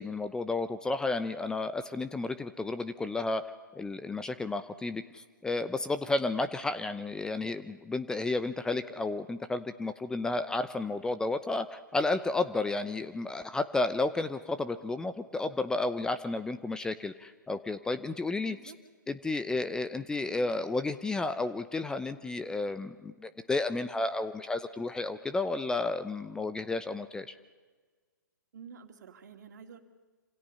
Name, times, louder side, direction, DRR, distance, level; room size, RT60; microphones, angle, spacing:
voice 1, 0.0-3.4 3.7-18.6 19.1-27.3, left 2 dB, 5° left, 11 dB, 0.8 m, -32 dB
voice 2, 18.4-18.8 28.5-29.8, right 7 dB, 60° right, 5 dB, 2.7 m, -49 dB
27.0 x 27.0 x 5.6 m, 1.4 s
hypercardioid pair, 130°, 11 cm